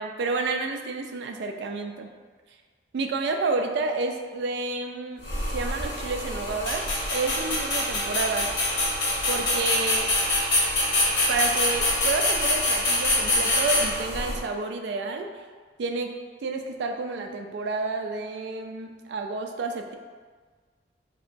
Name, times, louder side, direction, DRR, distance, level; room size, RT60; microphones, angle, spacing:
voice 1, 0.0-2.1 2.9-5.2 5.5-6.8 7.1-8.5 9.3-10.1 11.3-15.3 15.8-16.2 16.4-20.0, right 3 dB, 70° right, 4 dB, 0.3 m, -30 dB
sound 1, 5.2-14.4, left 1 dB, 75° left, 1.1 m, -25 dB
3.4 x 2.8 x 2.5 m, 1.5 s
head